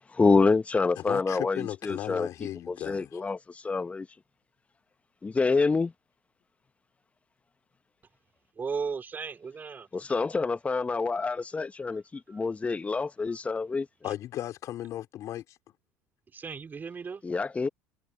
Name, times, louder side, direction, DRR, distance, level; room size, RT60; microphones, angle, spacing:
voice 1, 0.1-2.3 2.7-4.1 5.2-5.9 9.9-13.9 17.2-17.7, left 4 dB, 20° left, 1.1 m, -27 dB
voice 2, 1.0-3.2 14.0-15.6, left 12 dB, 50° left, 2.9 m, -36 dB
voice 3, 8.5-9.9 11.2-11.3 11.9-12.0 12.3-12.4 16.3-17.2, right 5 dB, 30° right, 3.2 m, -36 dB
hypercardioid pair, 75°, 7 cm